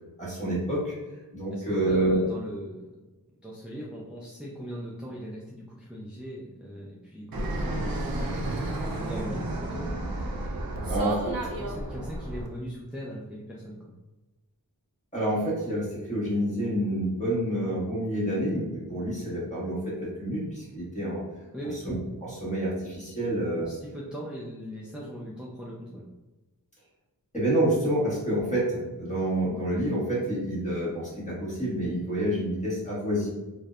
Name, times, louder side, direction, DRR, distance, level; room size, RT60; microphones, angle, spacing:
voice 1, 0.2-0.9 1.3-2.2 10.9-11.5 11.9-12.0 15.1-21.2 21.8-21.9 22.2-23.7 27.3-33.3, right 1 dB, 20° left, -7 dB, 1.2 m, -28 dB
voice 2, 1.5-2.9 3.4-8.4 8.9-9.9 10.7-13.9 21.5-21.8 23.6-26.0, equal, 5° right, -5 dB, 0.3 m, -39 dB
Fixed-wing aircraft airplane, 7.3-12.5, right 1 dB, 70° right, 0.5 m, -32 dB
2.5 x 2.0 x 2.3 m, 1.1 s
wide cardioid pair, 50°, 36 cm